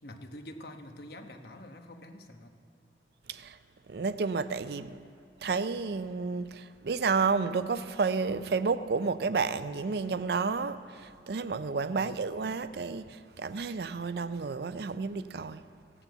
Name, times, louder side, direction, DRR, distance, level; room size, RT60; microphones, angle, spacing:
voice 1, 0.0-2.6 12.0-12.3, left 1 dB, 60° left, 1.1 m, -46 dB
voice 2, 3.9-5.0 5.4-15.6, right 4 dB, 60° right, 0.5 m, -31 dB
16.5 x 7.1 x 8.1 m
head